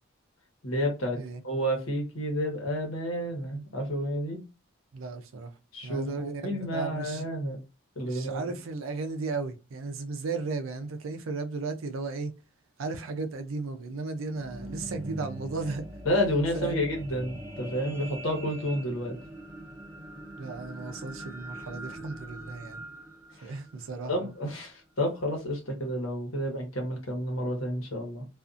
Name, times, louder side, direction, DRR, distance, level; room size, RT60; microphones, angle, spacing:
voice 1, 0.6-4.4 5.7-7.6 8.0-8.5 16.0-19.2 23.4-23.6 24.1-28.2, equal, 90° left, 1.1 m, -30 dB
voice 2, 4.9-5.5 5.8-7.2 8.0-12.3 12.8-15.8 16.5-16.9 20.4-22.8 23.4-24.2, right 3 dB, 80° right, 0.5 m, -35 dB
sound 1, 14.1-24.6 25.2-25.3, right 1 dB, 10° right, 0.6 m, -43 dB
2.5 x 2.4 x 2.5 m
head